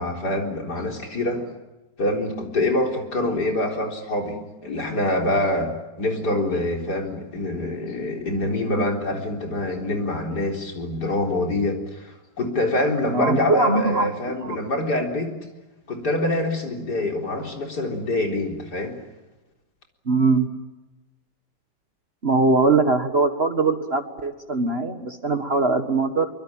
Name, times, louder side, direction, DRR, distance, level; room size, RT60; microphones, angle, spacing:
voice 1, 0.0-1.5 2.0-15.3 15.9-19.0, left 1 dB, 65° left, 2 dB, 4.5 m, -25 dB
voice 2, 13.1-14.1 14.4-14.6 20.1-20.5 22.2-26.3, right 3 dB, 35° right, 8 dB, 1.7 m, -21 dB
25.0 x 24.5 x 8.8 m, 1.1 s
omnidirectional pair, 1.9 m